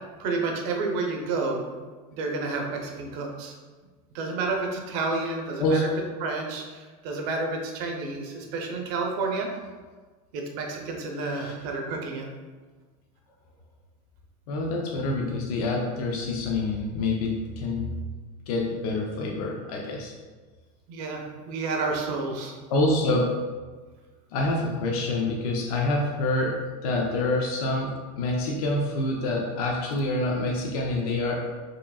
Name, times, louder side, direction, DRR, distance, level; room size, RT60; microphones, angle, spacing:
voice 1, 0.2-1.7 2.1-3.5 4.1-5.9 6.2-9.5 10.3-12.3 20.9-22.5, right 3 dB, 55° right, 1 dB, 0.6 m, -30 dB
voice 2, 14.5-17.9 18.5-20.1 22.7-23.3 24.3-31.4, left 2 dB, 85° left, -1 dB, 0.6 m, -27 dB
4.8 x 3.0 x 2.3 m, 1.4 s
supercardioid pair, 155°, 19 cm